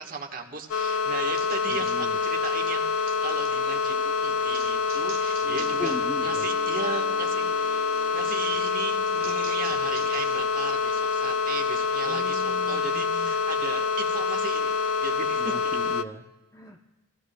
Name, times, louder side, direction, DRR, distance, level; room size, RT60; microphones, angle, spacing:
voice 1, 0.0-15.8, right 4 dB, 45° right, 3 dB, 1.3 m, -37 dB
sound 1, 0.7-16.0, left 5 dB, 65° left, 0.5 m, -26 dB
sound 2, 1.3-3.5 4.5-6.1 6.4-6.8 7.9-10.4, right 8 dB, 85° right, 0.9 m, -47 dB
voice 2, 1.7-2.2 5.8-6.5 12.0-13.3 15.4-16.9, left 2 dB, 15° left, 3 dB, 0.5 m, -39 dB
Mallet percussion, 5.4-11.0, right 2 dB, 20° right, 0.7 m, -47 dB
28.0 x 15.5 x 2.2 m, 1.2 s
head